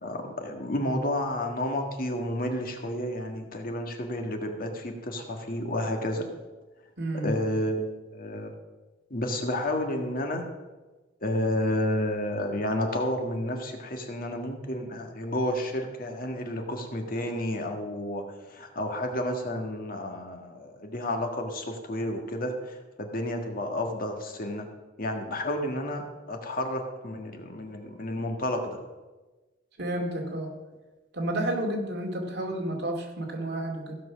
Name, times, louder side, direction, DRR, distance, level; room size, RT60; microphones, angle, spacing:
voice 1, 0.0-6.3 7.2-8.5 9.1-10.4 11.2-18.2 18.6-22.5 23.0-24.7 25.0-28.8, left 1 dB, 50° left, 3 dB, 1.6 m, -31 dB
voice 2, 7.0-7.4 29.8-30.5 31.1-34.0, right 1 dB, 60° right, 1 dB, 2.3 m, -31 dB
15.5 x 6.1 x 6.2 m, 1.2 s
head